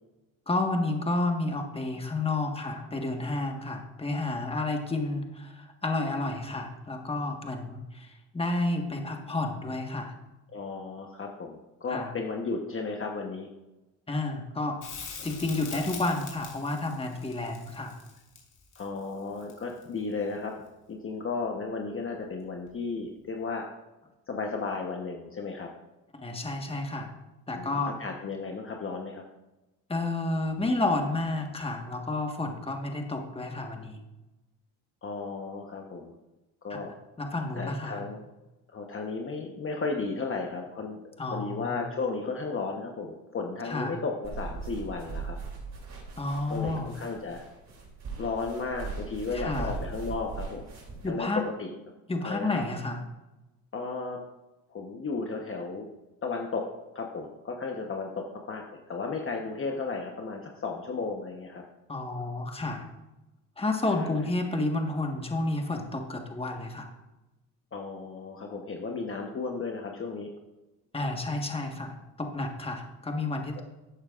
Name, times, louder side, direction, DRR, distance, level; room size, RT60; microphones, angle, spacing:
voice 1, 0.5-10.1 11.9-12.1 14.1-14.8 15.2-17.9 26.1-27.1 27.5-28.0 29.9-34.0 37.2-38.0 41.2-41.8 43.6-44.0 46.2-46.9 49.3-49.7 51.0-51.4 52.1-53.0 61.9-62.8 63.6-66.9 70.9-73.6, left 2 dB, 15° left, 3 dB, 1.5 m, -31 dB
voice 2, 10.5-13.5 15.2-15.3 18.7-20.5 20.9-23.6 24.3-25.7 27.5-29.2 35.0-36.1 36.6-36.9 37.5-38.2 38.7-45.4 46.5-47.4 48.2-50.7 51.0-51.7 52.2-52.6 53.7-54.2 54.7-55.9 56.2-56.6 56.9-61.6 63.9-64.3 67.7-70.3 73.6-73.7, left 4 dB, 30° left, 1 dB, 1.1 m, -34 dB
Crackle, 14.8-19.9 22.7-22.8, left 5 dB, 50° left, 3.1 m, -43 dB
sound 1, 44.2-51.1, right 4 dB, 45° right, 3.2 m, -39 dB
12.5 x 8.6 x 2.5 m, 1.0 s
cardioid pair, 90°, 39 cm